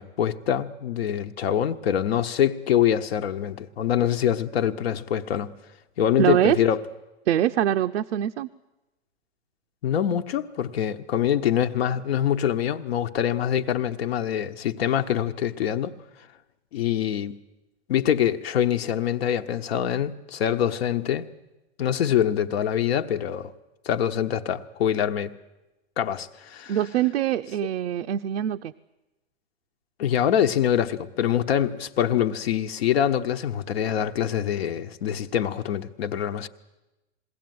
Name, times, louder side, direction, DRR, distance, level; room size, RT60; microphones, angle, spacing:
voice 1, 0.0-5.5 6.0-6.8 9.8-15.9 16.7-17.4 17.9-21.3 21.8-23.5 23.8-25.3 26.0-26.8 30.0-36.5, left 10 dB, 65° left, 1.1 m, -24 dB
voice 2, 6.2-6.6 7.3-8.5 26.7-28.7, right 11 dB, 85° right, 0.7 m, -23 dB
21.5 x 16.5 x 9.3 m
hypercardioid pair, 155°, 33 cm